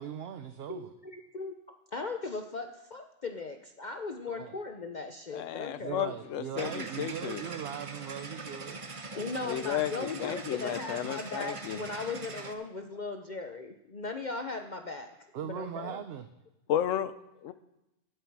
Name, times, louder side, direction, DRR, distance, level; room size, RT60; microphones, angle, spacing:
voice 1, 0.0-0.9 4.3-4.5 5.8-8.8 12.9-13.0 15.3-16.3, right 9 dB, 60° right, 9 dB, 0.8 m, -40 dB
voice 2, 0.7-1.5 1.9-6.1 9.1-15.1 15.4-16.0, left 3 dB, 45° left, 5 dB, 0.8 m, -38 dB
voice 3, 5.3-7.4 9.4-11.8 16.7-17.1 17.4-17.5, left 11 dB, 80° left, 14 dB, 1.0 m, -33 dB
sound 1, 6.6-12.5, right 3 dB, 30° right, 0.7 m, -42 dB
15.5 x 8.0 x 4.7 m, 0.92 s
omnidirectional pair, 1.3 m